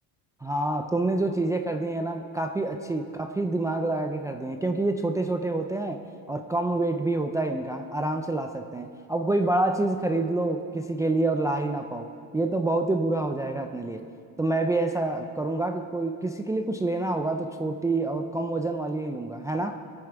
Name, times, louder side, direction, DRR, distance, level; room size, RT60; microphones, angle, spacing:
voice 1, 0.4-14.0 14.4-19.8, right 2 dB, 10° right, 4 dB, 0.4 m, -27 dB
21.5 x 8.9 x 4.6 m, 2.5 s
cardioid pair, 120°, 38 cm